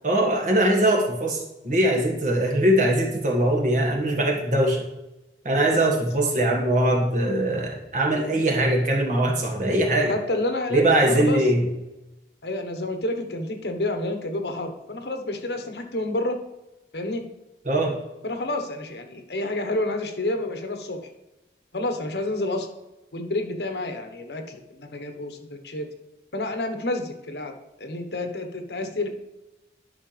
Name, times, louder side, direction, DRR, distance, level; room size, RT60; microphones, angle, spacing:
voice 1, 0.0-4.8 5.4-10.1 10.7-11.6 17.6-17.9, right 1 dB, 45° right, 0 dB, 1.6 m, -21 dB
voice 2, 10.1-11.4 12.4-16.4 16.9-17.2 18.2-21.0 21.7-22.7 23.1-25.9 26.3-27.5 27.8-29.1, left 2 dB, 75° left, 5 dB, 1.1 m, -29 dB
11.5 x 5.9 x 3.3 m, 0.99 s
head